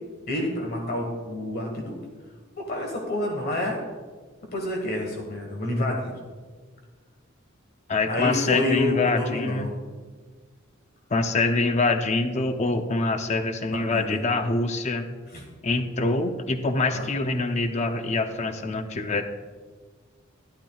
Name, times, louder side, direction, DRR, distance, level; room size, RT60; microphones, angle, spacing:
voice 1, 0.3-2.0 2.6-3.8 4.5-6.1 8.0-9.7 13.7-14.2 15.3-15.4 16.9-17.1, left 1 dB, 50° left, 1 dB, 1.3 m, -28 dB
voice 2, 7.9-9.7 11.1-15.1 15.6-19.2, left 3 dB, 35° left, 7 dB, 0.6 m, -25 dB
12.0 x 11.5 x 2.3 m, 1.4 s
head